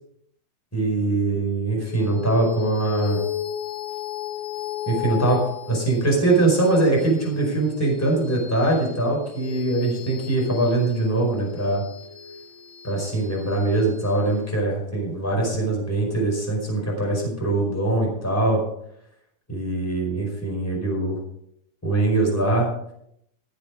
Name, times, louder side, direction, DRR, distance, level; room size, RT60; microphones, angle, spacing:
voice 1, 0.7-3.2 4.9-11.8 12.8-18.6 19.5-21.2 21.8-22.7, right 2 dB, 5° left, -1 dB, 4.5 m, -22 dB
sound 1, 1.9-16.6, left 11 dB, 60° left, 2.0 m, -35 dB
15.5 x 8.3 x 5.1 m, 0.74 s
omnidirectional pair, 4.3 m